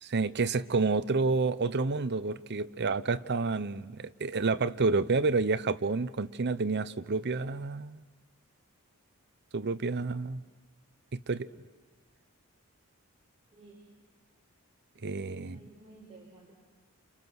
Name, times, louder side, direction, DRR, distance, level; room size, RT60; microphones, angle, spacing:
voice 1, 0.0-8.0 9.5-10.4 11.1-11.5 15.0-15.6, right 3 dB, 50° right, 14 dB, 0.7 m, -29 dB
voice 2, 13.5-13.9 15.1-16.5, right 2 dB, 25° right, -3 dB, 5.0 m, -54 dB
30.0 x 28.5 x 6.2 m, 1.3 s
head